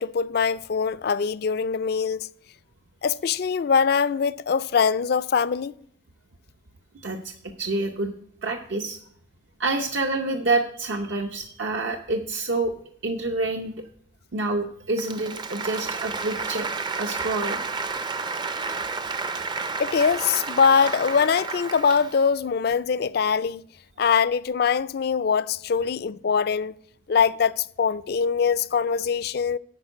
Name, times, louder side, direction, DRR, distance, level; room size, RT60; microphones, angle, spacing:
voice 1, 0.0-2.3 3.0-5.7 19.8-23.6 24.0-26.7 27.1-29.6, left 6 dB, 55° left, 0.3 m, -23 dB
voice 2, 7.0-7.3 7.6-8.1 8.4-9.0 9.6-12.7 13.0-13.8 14.3-16.7 16.9-17.6, right 2 dB, 70° right, 0.7 m, -27 dB
Applause, 14.9-22.3, right 4 dB, 25° right, 0.4 m, -31 dB
10.5 x 4.5 x 7.9 m
head